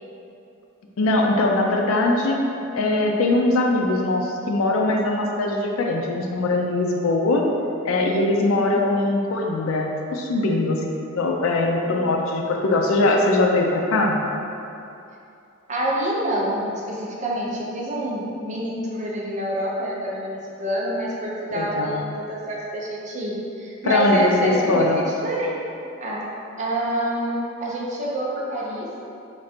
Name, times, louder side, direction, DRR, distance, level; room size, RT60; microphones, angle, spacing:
voice 1, 1.0-2.4 2.7-7.5 7.8-14.2 21.5-22.0 23.8-25.0, left 2 dB, 85° left, 1 dB, 0.4 m, -21 dB
voice 2, 15.7-25.6 26.0-26.3 26.6-28.9, right 1 dB, 35° right, -4 dB, 0.5 m, -27 dB
3.1 x 2.5 x 4.2 m, 2.7 s
head